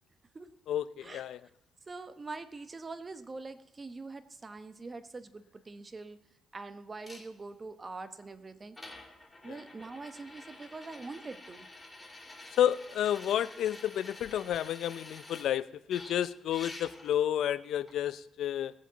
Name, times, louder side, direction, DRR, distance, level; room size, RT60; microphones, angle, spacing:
voice 1, 0.7-1.4 9.5-9.6 12.6-18.7, left 11 dB, 75° left, 15 dB, 0.5 m, -31 dB
voice 2, 1.9-6.2 6.5-8.8 9.4-11.7, right 3 dB, 30° right, 11 dB, 1.0 m, -44 dB
sound 1, 7.0-7.2 8.2-8.3 8.7-15.5 15.9-17.2 17.9-18.0, left 2 dB, 10° left, 2.8 m, -49 dB
18.0 x 7.6 x 4.0 m, 0.84 s
cardioid pair, 90°, 0 cm